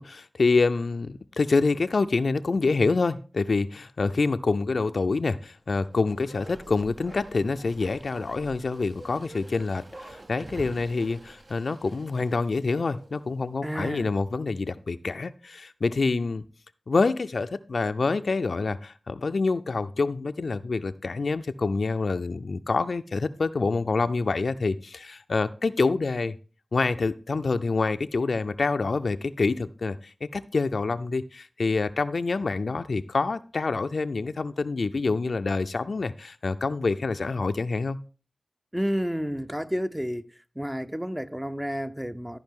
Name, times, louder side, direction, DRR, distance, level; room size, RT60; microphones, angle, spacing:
voice 1, 0.0-16.4 16.9-26.4 26.7-38.0, left 3 dB, 75° left, 0.4 m, -26 dB
Bark, 5.7-13.3 13.6-13.7, right 2 dB, 55° right, 0.8 m, -47 dB
voice 2, 13.6-14.1 38.7-40.3 40.6-42.4, equal, 10° right, 0.5 m, -30 dB
13.5 x 4.9 x 3.7 m
cardioid pair, 50°, 0 cm